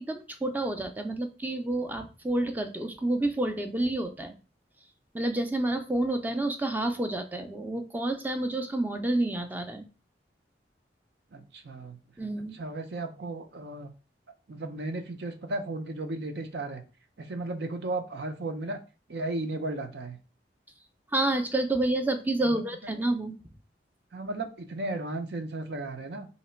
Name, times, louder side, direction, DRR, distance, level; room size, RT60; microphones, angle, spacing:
voice 1, 0.0-4.3 5.1-9.8 12.2-12.6 21.1-23.3, right 2 dB, 10° right, 5 dB, 0.4 m, -29 dB
voice 2, 11.3-12.0 12.5-13.9 14.5-16.8 17.2-18.8 19.1-20.2 22.4-22.9 24.1-26.3, right 2 dB, 70° right, 7 dB, 0.6 m, -35 dB
3.2 x 2.9 x 4.3 m, 0.33 s
head